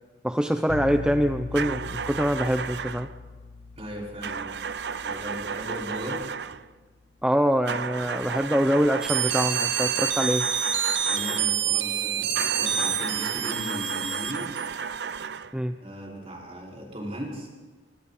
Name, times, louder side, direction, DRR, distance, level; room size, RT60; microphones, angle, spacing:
voice 1, 0.2-3.1 7.2-10.5 15.5-15.8, equal, 5° right, 7 dB, 0.6 m, -24 dB
sound 1, 0.7-6.5, left 4 dB, 80° left, 0.7 m, -40 dB
sound 2, 1.5-3.1 4.2-6.7 7.7-11.6 12.3-15.6, right 6 dB, 65° right, 0.6 m, -33 dB
voice 2, 3.8-4.6 5.0-6.2 11.0-14.6 15.8-17.5, equal, 35° right, -2 dB, 5.3 m, -37 dB
sound 3, 9.0-14.7, right 9 dB, 85° right, 1.2 m, -27 dB
27.0 x 23.0 x 4.2 m, 1.4 s
head